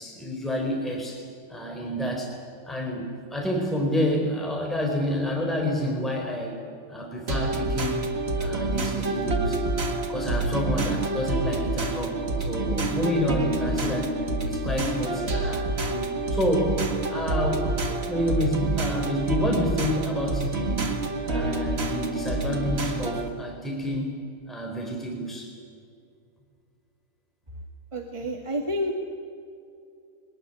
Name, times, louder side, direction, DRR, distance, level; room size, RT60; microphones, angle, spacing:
voice 1, 0.0-2.3 2.7-6.6 6.9-8.1 8.4-9.6 10.1-14.1 14.4-16.8 17.1-17.7 18.1-20.9 21.3-24.1 24.5-25.5, equal, ahead, 1 dB, 4.0 m, -29 dB
sound 1, 7.3-23.3, right 2 dB, 30° right, 1.8 m, -27 dB
voice 2, 27.9-28.9, equal, 15° right, 1 dB, 1.6 m, -29 dB
23.5 x 19.5 x 10.0 m, 2.5 s
omnidirectional pair, 2.4 m